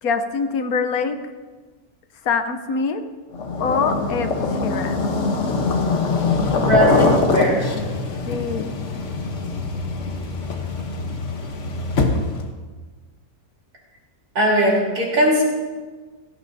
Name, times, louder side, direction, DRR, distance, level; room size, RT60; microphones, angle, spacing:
voice 1, 0.0-1.2 2.2-3.0 3.6-4.3 4.6-5.0 8.3-8.7, left 5 dB, 75° left, 9 dB, 1.3 m, -24 dB
sound 1, 3.3-12.5, left 3 dB, 55° left, 1.3 m, -23 dB
voice 2, 6.5-7.7 14.4-15.4, right 1 dB, 85° right, -3 dB, 4.1 m, -19 dB
17.0 x 14.0 x 2.7 m, 1.4 s
omnidirectional pair, 1.6 m